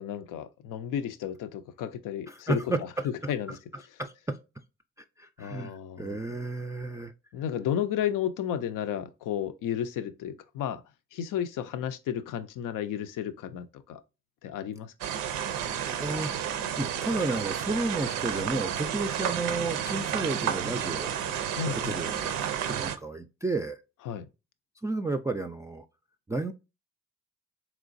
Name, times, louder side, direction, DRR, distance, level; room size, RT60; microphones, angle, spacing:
voice 1, 0.0-2.6 3.0-3.6 5.4-6.2 7.3-10.8 11.1-14.0 14.4-14.9 21.5-22.1 24.1-24.3, left 9 dB, 75° left, 0.5 m, -33 dB
voice 2, 2.3-3.6 4.0-4.4 5.2-7.1 16.0-16.3 16.8-21.1 21.8-23.8 24.8-25.9 26.3-26.5, right 2 dB, 10° right, 0.3 m, -32 dB
sound 1, 15.0-23.0, right 9 dB, 80° right, 0.5 m, -31 dB
3.7 x 3.0 x 2.5 m
supercardioid pair, 45°, 32 cm